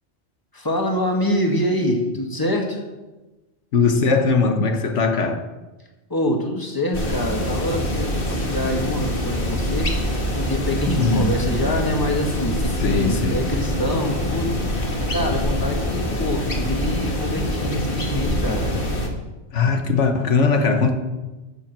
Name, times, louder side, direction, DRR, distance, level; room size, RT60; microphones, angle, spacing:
voice 1, 0.5-2.8 6.1-9.9 10.3-14.6 15.0-18.7, left 1 dB, 20° left, 1 dB, 1.9 m, -25 dB
voice 2, 3.7-5.4 10.9-11.3 12.8-13.4 19.5-20.9, left 4 dB, 85° left, 5 dB, 1.5 m, -20 dB
sound 1, 6.9-19.1, left 1 dB, 50° left, 2.0 m, -25 dB
14.0 x 7.5 x 6.1 m, 1.1 s
omnidirectional pair, 1.2 m